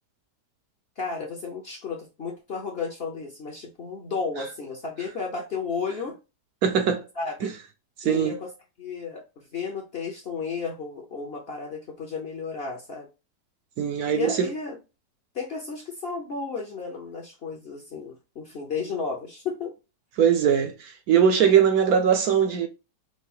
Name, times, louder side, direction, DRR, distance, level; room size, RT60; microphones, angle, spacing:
voice 1, 1.0-6.2 7.2-7.5 8.0-8.5 8.8-13.1 14.1-14.8 15.3-19.7, left 5 dB, 45° left, 0.8 m, -33 dB
voice 2, 6.6-7.0 7.4-7.5 8.0-8.3 13.8-14.5 20.2-22.7, right 8 dB, 70° right, 1.0 m, -21 dB
4.7 x 2.1 x 4.1 m
omnidirectional pair, 1.8 m